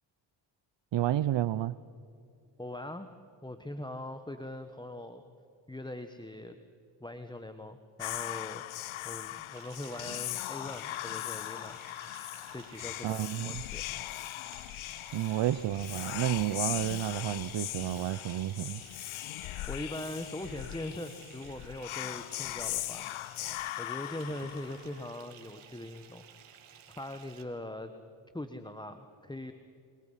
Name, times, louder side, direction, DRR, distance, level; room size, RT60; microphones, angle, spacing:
voice 1, 0.9-1.8 13.0-13.6 15.1-18.8, right 13 dB, 60° right, 17 dB, 0.7 m, -31 dB
voice 2, 2.6-3.1 3.4-5.2 5.7-6.6 7.0-11.8 12.5-13.8 19.7-23.1 23.8-26.2 27.0-27.9 28.3-29.5, left 1 dB, 10° left, 8 dB, 1.4 m, -41 dB
Whispering, 8.0-25.1, left 17 dB, 75° left, 0.6 m, -39 dB
Bathtub (filling or washing) / Fill (with liquid), 9.5-27.4, right 8 dB, 85° right, 2.7 m, -55 dB
27.0 x 27.0 x 5.7 m, 2.5 s
cardioid pair, 65°, 49 cm